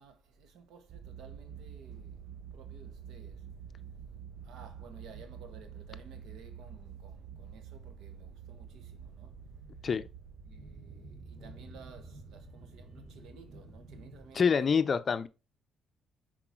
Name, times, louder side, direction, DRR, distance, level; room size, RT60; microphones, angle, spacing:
voice 1, 0.0-2.2 2.5-3.4 4.4-9.3 10.4-14.8, right 5 dB, 80° right, 1.4 m, -55 dB
sound 1, 0.9-14.1, right 8 dB, 65° right, 0.6 m, -49 dB
sound 2, 1.1-14.4, right 1 dB, 35° right, 3.0 m, -55 dB
voice 2, 14.3-15.3, left 6 dB, 45° left, 0.6 m, -26 dB
5.9 x 4.5 x 4.5 m
cardioid pair, 90°, 0 cm